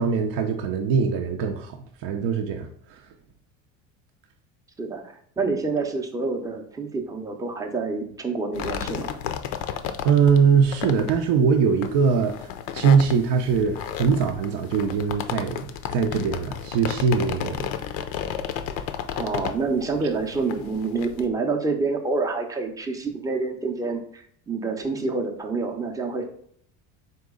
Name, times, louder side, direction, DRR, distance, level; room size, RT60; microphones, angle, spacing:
voice 1, 0.0-1.8 2.0-2.7 10.0-12.3 12.7-17.7, right 6 dB, 60° right, 3 dB, 0.6 m, -21 dB
voice 2, 4.8-9.1 19.2-26.2, right 3 dB, 10° right, 3 dB, 0.6 m, -27 dB
sound 1, 8.5-21.3, left 9 dB, 60° left, 0.5 m, -33 dB
4.0 x 3.0 x 3.6 m, 0.65 s
supercardioid pair, 100°, 39 cm